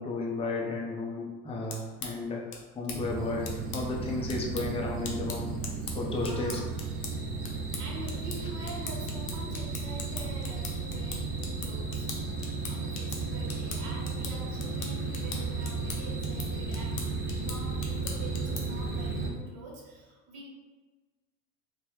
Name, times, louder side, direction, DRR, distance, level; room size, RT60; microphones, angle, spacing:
voice 1, 0.0-2.4 2.7-3.5 3.7-5.5 5.9-6.6 8.4-8.5, left 3 dB, 15° left, -2 dB, 0.5 m, -33 dB
sound 1, 1.5-18.9, left 5 dB, 45° left, 0.8 m, -43 dB
sound 2, 2.9-19.3, right 4 dB, 25° right, 0.7 m, -34 dB
voice 2, 6.1-6.7 7.8-12.1 12.7-20.5, right 2 dB, 50° right, -2 dB, 1.2 m, -45 dB
3.2 x 2.2 x 3.1 m, 1.3 s
hypercardioid pair, 85°, 47 cm